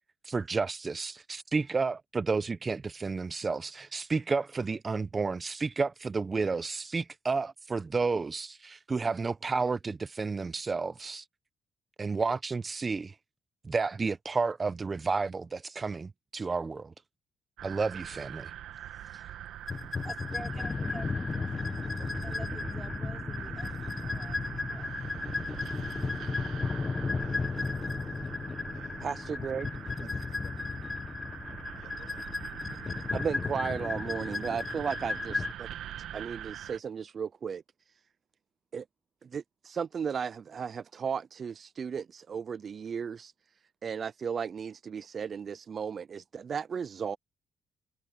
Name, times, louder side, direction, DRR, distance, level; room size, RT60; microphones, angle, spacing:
voice 1, 0.2-11.2 12.0-13.1 13.6-16.9 17.6-18.5, right 4 dB, 30° right, 0.7 m, -31 dB
sound 1, 17.6-36.8, right 11 dB, 80° right, 1.4 m, -43 dB
voice 2, 18.9-19.4 20.0-21.8 22.2-25.0, right 2 dB, 15° right, 4.9 m, -48 dB
sound 2, 19.7-35.5, left 4 dB, 30° left, 1.4 m, -34 dB
voice 3, 20.3-21.9 27.0-27.6 28.0-29.1 30.0-30.5 31.8-32.3, left 11 dB, 75° left, 6.5 m, -62 dB
voice 4, 29.0-29.7 33.1-35.7 36.1-37.6 38.7-38.9 39.2-43.3 43.8-47.2, right 6 dB, 50° right, 0.3 m, -35 dB
cardioid pair, 90°, 0 cm